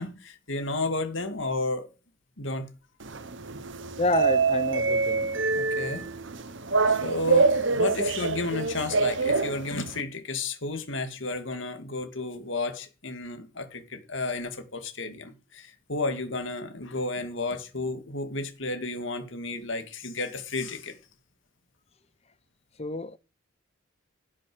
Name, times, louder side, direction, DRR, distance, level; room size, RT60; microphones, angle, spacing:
voice 1, 0.0-1.9 2.4-2.7 5.5-6.0 6.9-20.9, left 2 dB, 65° left, 2.2 m, -32 dB
sound 1, 3.0-10.0, right 4 dB, 60° right, 1.0 m, -26 dB
voice 2, 4.0-5.3 22.8-23.2, left 3 dB, 30° left, 0.7 m, -28 dB
16.0 x 6.5 x 6.2 m
head